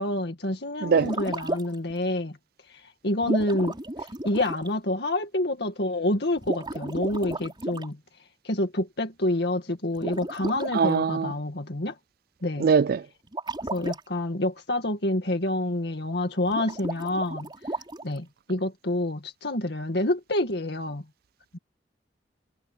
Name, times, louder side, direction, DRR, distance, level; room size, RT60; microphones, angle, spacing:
voice 1, 0.0-2.4 2.7-3.8 4.2-8.0 8.4-12.0 12.4-12.7 13.7-17.5 18.0-21.0 21.5-21.6, left 1 dB, 65° left, 2.1 m, -28 dB
sound 1, 0.9-1.9 3.2-4.7 6.4-7.9 9.9-10.7 13.3-14.0 16.4-18.2, right 1 dB, 25° right, 4.4 m, -33 dB
voice 2, 10.7-11.3 12.6-13.0, right 6 dB, 55° right, 0.4 m, -21 dB
head